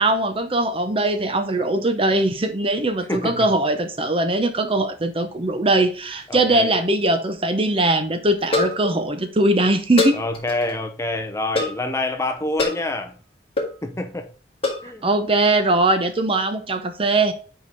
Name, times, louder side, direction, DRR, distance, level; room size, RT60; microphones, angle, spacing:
voice 1, 0.0-10.2 15.0-17.3, right 2 dB, 30° right, 0.8 m, -20 dB
voice 2, 3.1-3.5 6.3-6.7 10.1-13.1 13.8-14.3 14.8-15.1, left 2 dB, 15° left, 0.7 m, -27 dB
sound 1, 6.2-6.7 7.0-7.1 7.3-7.4 8.4-9.0 10.0-10.7 11.5-11.9 12.6-12.9 13.6-13.8 14.6-14.9, left 3 dB, 35° left, 2.0 m, -24 dB
5.2 x 5.0 x 5.4 m
head